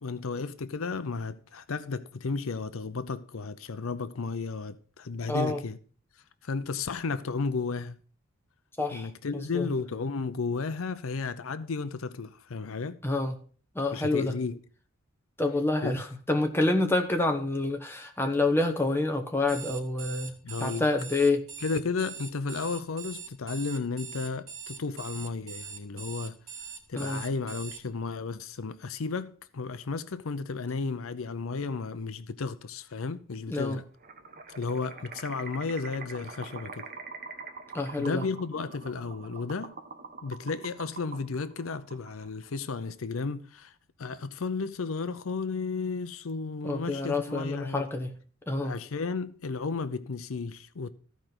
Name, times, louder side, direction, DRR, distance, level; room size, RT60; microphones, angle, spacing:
voice 1, 0.0-5.8 6.4-8.0 8.9-13.0 13.9-14.6 15.8-16.0 20.4-20.9 21.6-26.4 26.9-33.8 34.6-36.9 38.0-39.7 40.2-43.7 44.0-47.9 48.6-50.9, left 4 dB, 75° left, 0.6 m, -33 dB
voice 2, 5.3-5.6 8.8-9.7 13.0-13.4 13.7-14.4 15.4-21.4 26.9-27.2 33.5-33.8 37.7-38.2 46.6-48.1 48.5-48.8, left 2 dB, 10° left, 1.1 m, -28 dB
Alarm, 19.4-27.8, right 7 dB, 65° right, 2.6 m, -42 dB
sound 1, 34.0-42.5, right 4 dB, 45° right, 1.3 m, -44 dB
14.5 x 5.1 x 6.0 m
head